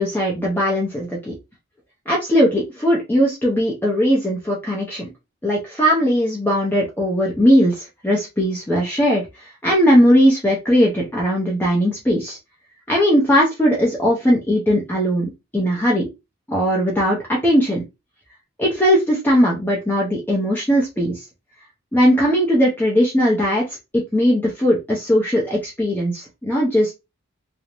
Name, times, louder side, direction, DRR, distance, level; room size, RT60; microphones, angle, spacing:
voice 1, 0.0-1.3 2.1-5.1 5.4-12.4 12.9-16.1 16.5-17.8 18.6-21.2 21.9-23.6 23.9-26.9, equal, 10° left, -3 dB, 0.5 m, -19 dB
2.5 x 2.0 x 2.9 m, 0.23 s
head